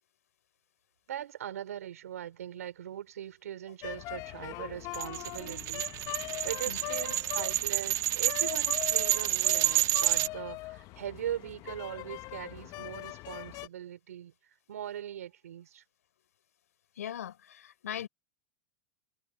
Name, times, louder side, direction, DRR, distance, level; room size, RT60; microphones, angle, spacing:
voice 1, 1.1-5.9 6.4-14.3 14.7-15.8, right 10 dB, 85° right, 5.4 m, -40 dB
sound 1, 3.8-13.7, left 20 dB, 45° left, 1.2 m, -41 dB
sound 2, 4.9-10.3, right 13 dB, 45° right, 1.5 m, -29 dB
voice 2, 17.0-18.1, left 10 dB, 85° left, 4.6 m, -39 dB
hypercardioid pair, 110°, 8 cm